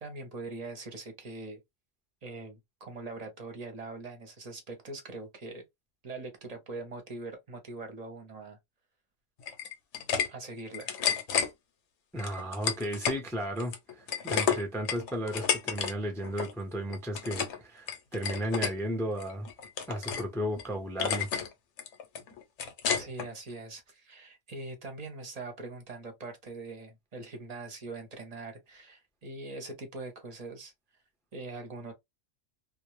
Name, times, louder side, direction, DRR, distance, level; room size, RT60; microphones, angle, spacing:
voice 1, 0.0-1.6 2.2-5.6 6.0-8.6 10.3-11.0 22.9-30.7 31.3-31.9, right 3 dB, 40° right, 0.7 m, -42 dB
sound 1, 9.4-10.3 10.6-11.5 12.2-13.2 13.6-15.9 16.2-16.5 16.9-17.6 17.9-18.7 19.2-20.3 20.6-20.7 21.0-21.5 21.8-23.3, left 7 dB, 70° left, 0.9 m, -31 dB
voice 2, 12.1-19.5 19.9-21.3, equal, 5° left, 0.3 m, -34 dB
2.3 x 2.0 x 2.9 m
omnidirectional pair, 1.3 m